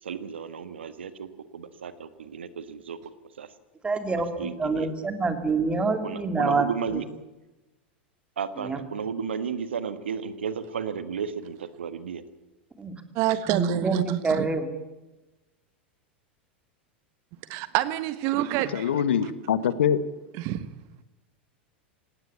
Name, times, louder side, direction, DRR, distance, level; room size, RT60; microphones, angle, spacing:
voice 1, 0.0-3.0 3.4-3.5 4.1-4.9 6.0-7.1 8.4-12.2, right 6 dB, 85° right, 13 dB, 1.5 m, -33 dB
voice 2, 3.8-6.7 8.6-8.8 12.8-12.9 13.5-14.8, right 3 dB, 15° right, 7 dB, 3.1 m, -26 dB
voice 3, 13.1-14.5 17.5-19.3 20.3-20.7, right 14 dB, 50° right, 14 dB, 1.4 m, -27 dB
voice 4, 18.7-20.0, left 8 dB, 80° left, 14 dB, 1.4 m, -24 dB
18.0 x 18.0 x 8.5 m, 1.1 s
hypercardioid pair, 95°, 6 cm